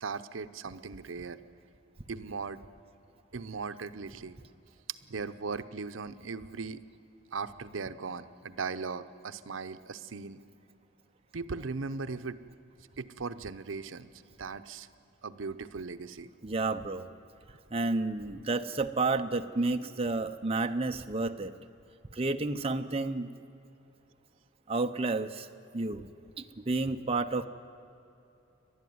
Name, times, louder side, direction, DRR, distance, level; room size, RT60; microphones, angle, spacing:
voice 1, 0.0-1.4 2.1-2.6 3.3-4.4 4.9-6.8 7.3-10.4 11.3-12.4 13.0-14.1 14.4-14.9 15.2-16.3, right 4 dB, 80° right, 12 dB, 0.7 m, -38 dB
voice 2, 16.4-17.1 17.7-21.5 22.1-23.3 24.7-25.5 25.7-26.1 26.4-27.5, right 3 dB, 30° right, 6 dB, 0.7 m, -30 dB
30.0 x 12.0 x 9.4 m, 2.7 s
head